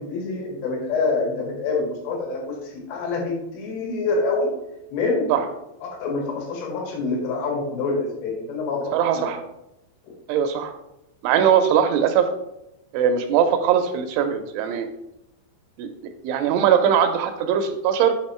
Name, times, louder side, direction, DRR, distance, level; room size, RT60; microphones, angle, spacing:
voice 1, 0.0-4.5 4.9-5.4 5.8-9.3 10.0-10.1, left 3 dB, 80° left, -2 dB, 4.3 m, -26 dB
voice 2, 8.9-9.4 10.3-10.7 11.2-12.3 12.9-14.9 15.8-15.9 16.2-18.1, right 8 dB, 80° right, 7 dB, 2.9 m, -20 dB
8.1 x 4.1 x 4.2 m, 0.85 s
omnidirectional pair, 5.7 m